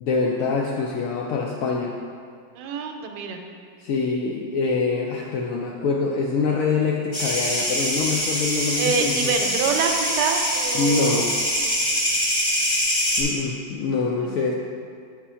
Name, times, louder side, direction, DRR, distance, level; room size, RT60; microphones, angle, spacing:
voice 1, 0.0-2.0 3.8-9.4 10.7-11.4 13.2-14.5, left 4 dB, 75° left, -1 dB, 0.7 m, -25 dB
voice 2, 2.6-3.4 8.8-11.4 14.2-14.5, right 5 dB, 75° right, 4 dB, 1.2 m, -26 dB
sound 1, 7.1-13.2, equal, 40° left, 1.9 m, -24 dB
6.8 x 3.7 x 5.5 m, 2.3 s
omnidirectional pair, 1.9 m